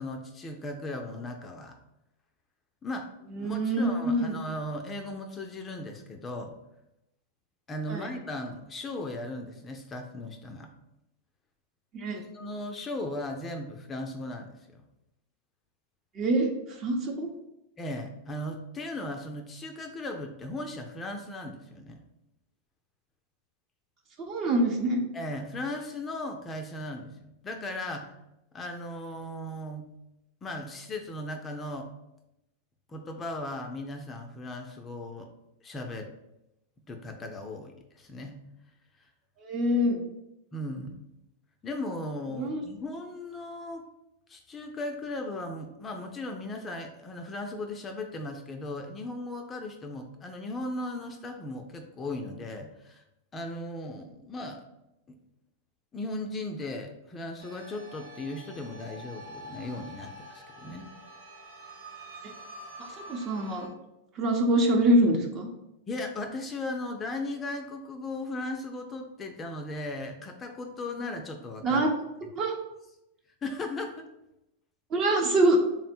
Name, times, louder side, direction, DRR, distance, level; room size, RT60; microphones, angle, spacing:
voice 1, 0.0-1.8 2.8-6.5 7.7-10.7 12.1-14.8 17.8-22.0 25.1-28.1 28.5-29.9 30.4-31.9 32.9-35.3 35.6-36.1 36.9-38.4 40.5-41.0 41.6-43.8 44.3-53.0 53.3-54.6 55.1-55.2 55.9-60.9 65.9-71.9 73.4-74.1, left 2 dB, 20° left, 4 dB, 0.4 m, -37 dB
voice 2, 3.3-4.3 7.9-8.1 11.9-12.2 16.1-17.3 24.2-25.0 39.4-40.0 42.4-42.6 62.8-63.7 64.2-65.5 71.6-71.9 72.3-72.5 74.9-75.6, right 1 dB, 35° right, 2 dB, 0.8 m, -25 dB
sound 1, 57.4-63.7, right 1 dB, 80° right, 1.4 m, -46 dB
3.6 x 2.1 x 4.3 m, 0.87 s
hypercardioid pair, 120°, 0 cm